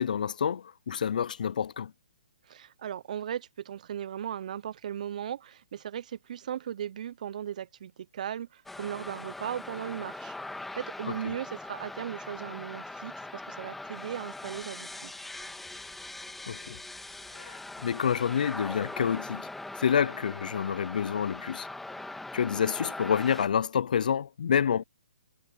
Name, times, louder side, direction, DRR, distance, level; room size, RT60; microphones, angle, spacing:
voice 1, 0.0-1.9 16.5-16.8 17.3-19.5 19.8-21.7 22.3-24.8, left 7 dB, 65° left, 0.7 m, -28 dB
voice 2, 2.5-10.4 10.7-15.1, right 9 dB, 55° right, 0.7 m, -37 dB
sound 1, 8.7-23.5, left 2 dB, 5° left, 2.1 m, -41 dB
hypercardioid pair, 140°, 5 cm